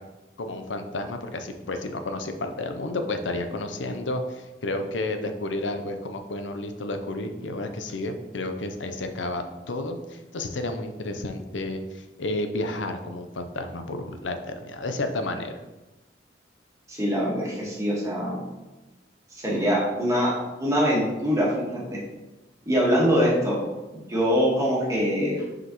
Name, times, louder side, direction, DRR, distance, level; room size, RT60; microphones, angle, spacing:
voice 1, 0.4-15.5, left 2 dB, 85° left, 7 dB, 0.7 m, -31 dB
voice 2, 16.9-18.4 19.4-20.3 20.6-22.0 22.6-23.6 24.1-25.4, equal, 15° right, -4 dB, 1.6 m, -23 dB
6.3 x 5.0 x 3.0 m, 1.1 s
head